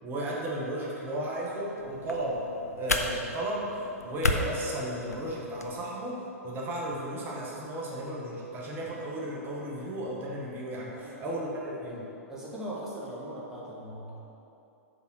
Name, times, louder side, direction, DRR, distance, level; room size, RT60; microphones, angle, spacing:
voice 1, 0.0-2.4 2.8-12.1, right 1 dB, 25° right, -4 dB, 1.3 m, -34 dB
sound 1, 1.8-5.7, left 2 dB, 90° left, 0.5 m, -33 dB
voice 2, 10.9-11.4 12.3-14.2, right 1 dB, 5° right, -7 dB, 1.2 m, -40 dB
5.4 x 5.2 x 6.2 m, 2.9 s
figure-of-eight pair, 105°, 8 cm